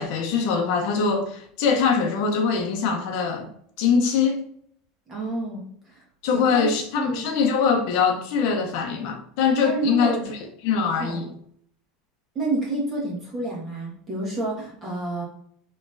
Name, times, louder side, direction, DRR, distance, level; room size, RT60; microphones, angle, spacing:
voice 1, 0.0-3.5 3.8-4.4 6.2-10.1 10.6-11.3, left 5 dB, 50° left, 0.7 m, -22 dB
voice 2, 5.1-6.0 6.3-6.7 6.9-7.3 9.6-10.3 10.9-11.2 12.3-15.2, right 2 dB, 20° right, 1.4 m, -29 dB
5.8 x 3.0 x 2.6 m
supercardioid pair, 175°, 0 cm